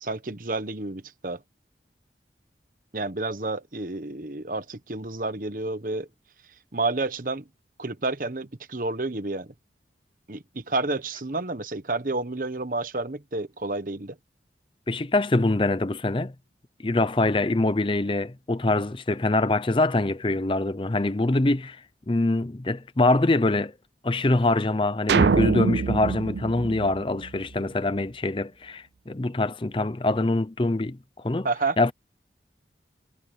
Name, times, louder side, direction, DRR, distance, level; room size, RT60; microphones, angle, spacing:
voice 1, 0.0-1.4 2.9-6.1 6.7-7.5 7.8-9.5 10.3-14.2 31.4-31.8, right 3 dB, 50° right, 1.2 m, -30 dB
voice 2, 14.9-16.3 16.8-21.8 22.1-23.7 24.0-31.0 31.2-31.5 31.8-31.9, left 2 dB, 30° left, 0.6 m, -24 dB
sound 1, 25.1-27.5, right 4 dB, 75° right, 0.5 m, -24 dB
head